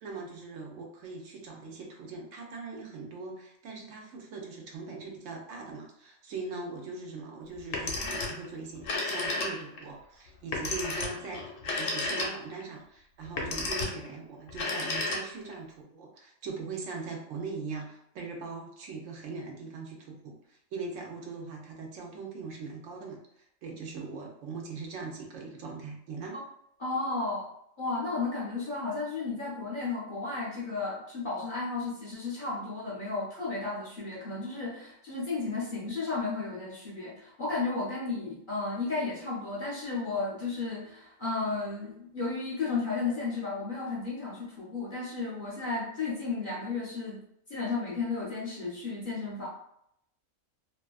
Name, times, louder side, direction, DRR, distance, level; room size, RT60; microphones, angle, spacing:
voice 1, 0.0-26.4, right 4 dB, 70° right, 0 dB, 0.9 m, -41 dB
Telephone, 7.6-8.5 8.8-9.8 10.5-12.6 13.3-14.1 14.5-15.5, left 3 dB, 70° left, 1.0 m, -32 dB
voice 2, 26.8-27.5 27.8-47.2 47.5-49.5, left 3 dB, 50° left, -5 dB, 0.7 m, -33 dB
2.6 x 2.4 x 2.3 m, 0.74 s
omnidirectional pair, 1.4 m